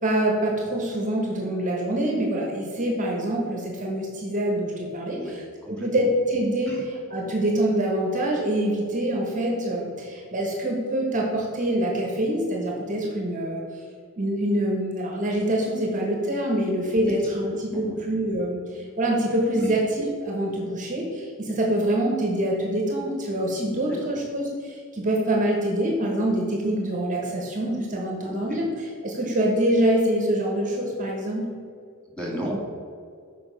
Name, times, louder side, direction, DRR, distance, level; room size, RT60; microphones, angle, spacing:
voice 1, 0.0-5.4 5.7-13.8 14.2-31.4, right 1 dB, 35° right, -1 dB, 1.2 m, -25 dB
voice 2, 5.1-5.9 6.7-6.8 17.0-17.1 17.7-18.0 19.6-19.7 23.7-24.0 28.2-28.6 32.1-32.5, equal, 5° left, -4 dB, 1.8 m, -35 dB
6.9 x 5.2 x 5.2 m, 2.2 s
head